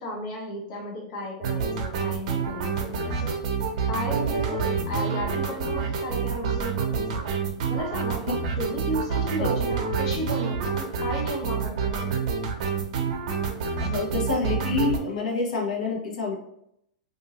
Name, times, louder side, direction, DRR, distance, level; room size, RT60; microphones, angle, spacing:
voice 1, 0.0-3.4 3.9-8.3 8.6-12.2, equal, 50° left, 0 dB, 1.0 m, -34 dB
sound 1, 1.4-15.0, right 5 dB, 60° right, 0.6 m, -27 dB
voice 2, 13.8-16.3, left 4 dB, 80° left, -1 dB, 1.0 m, -27 dB
2.6 x 2.6 x 2.9 m, 0.74 s
supercardioid pair, 140°, 4 cm